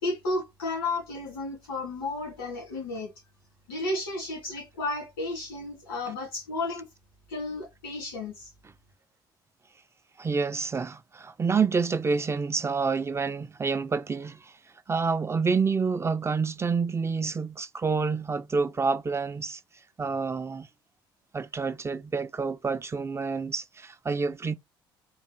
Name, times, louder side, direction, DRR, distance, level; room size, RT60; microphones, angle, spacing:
voice 1, 0.0-3.1 3.7-6.9 7.3-8.5, left 2 dB, 85° left, 2.5 m, -33 dB
voice 2, 10.2-14.5 14.9-19.6 20.0-20.7 21.3-24.6, right 5 dB, 25° right, 0.4 m, -28 dB
4.6 x 2.4 x 3.3 m
hypercardioid pair, 55°, 11 cm